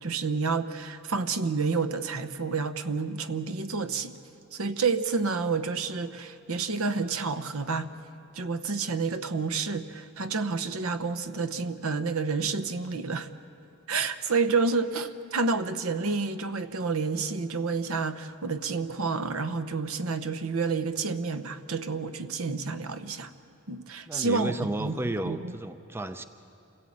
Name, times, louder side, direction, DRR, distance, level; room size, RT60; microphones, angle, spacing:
voice 1, 0.0-4.2 4.5-7.9 8.3-13.3 13.9-23.3 23.7-25.5, right 4 dB, 65° right, 11 dB, 0.9 m, -29 dB
voice 2, 24.1-26.2, right 1 dB, 10° right, 10 dB, 0.5 m, -33 dB
27.5 x 16.5 x 8.7 m, 2.8 s
head